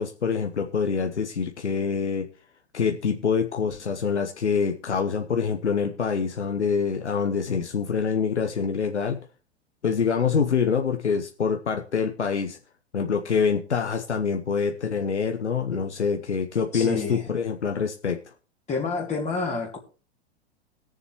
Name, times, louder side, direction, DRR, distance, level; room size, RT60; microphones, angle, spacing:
voice 1, 0.0-2.3 2.7-9.2 9.8-12.6 12.9-18.3, left 6 dB, 90° left, 1.0 m, -25 dB
voice 2, 16.7-17.2 18.7-19.8, left 4 dB, 20° left, 2.6 m, -28 dB
21.0 x 7.2 x 3.0 m
hypercardioid pair, 100°, 34 cm